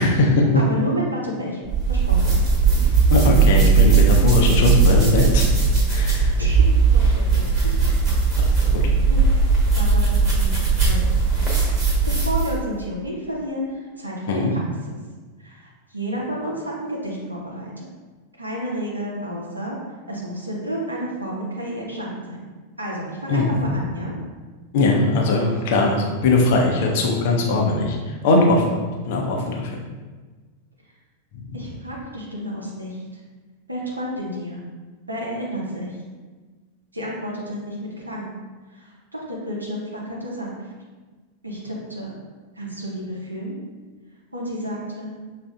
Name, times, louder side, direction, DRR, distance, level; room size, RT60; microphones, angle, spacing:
voice 1, 0.0-0.6 3.1-5.4 5.9-6.3 7.3-7.4 8.7-8.8 14.3-14.5 23.3-23.7 24.7-28.7 29.1-29.8 31.5-31.6, left 2 dB, 50° left, 0 dB, 0.7 m, -20 dB
voice 2, 0.5-2.3 6.4-6.7 6.9-8.0 9.1-9.2 9.7-10.5 10.8-11.1 11.4-11.7 12.1-14.6 15.4-17.9 18.4-19.8 20.1-22.5 22.8-24.1 31.5-33.2 33.7-34.6 35.1-36.0 36.9-37.8 38.0-38.3 38.7-40.7 41.4-42.1 42.6-43.6 44.3-45.1, equal, 85° right, -4 dB, 0.7 m, -31 dB
sound 1, 1.7-12.6, right 4 dB, 25° right, 1.2 m, -18 dB
6.1 x 2.4 x 2.3 m, 1.4 s
figure-of-eight pair, 90°, 0 cm